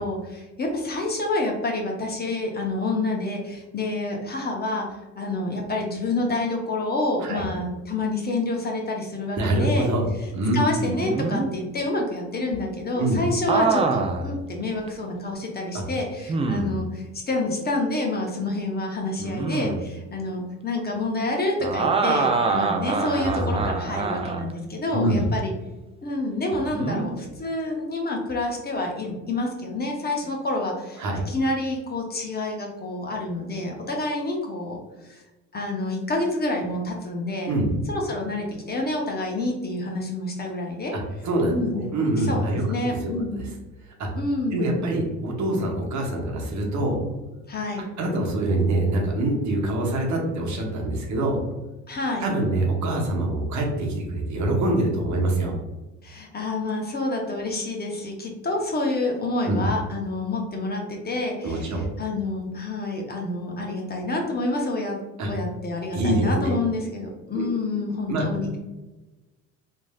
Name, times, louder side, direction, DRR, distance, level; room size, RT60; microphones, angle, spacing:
voice 1, 0.0-4.9 5.2-9.9 10.5-25.5 26.0-35.2 35.5-37.5 37.9-40.9 41.5-41.9 42.2-43.4 44.1-44.7 47.5-47.8 51.9-52.3 56.0-65.0 65.3-68.6, left 2 dB, 25° left, 1 dB, 0.7 m, -28 dB
voice 2, 9.4-10.1 10.3-10.6 12.9-13.2 15.7-15.8 23.1-23.5 24.9-25.3 31.0-31.2 37.5-37.7 40.9-42.6 43.0-43.5 44.0-44.1 44.5-47.0 47.8-51.4 52.2-55.5 59.5-59.7 61.4-61.9 65.2-65.3 65.9-66.6 67.3-67.5 68.1-68.3, right 1 dB, 50° right, 0 dB, 0.9 m, -25 dB
sound 1, 10.8-11.5 13.5-14.3 14.9-15.0 16.3-16.8 19.2-19.9 21.6-24.5 26.7-27.1, right 4 dB, 20° right, 0.3 m, -25 dB
3.1 x 2.6 x 2.2 m, 1.1 s
supercardioid pair, 75°, 35 cm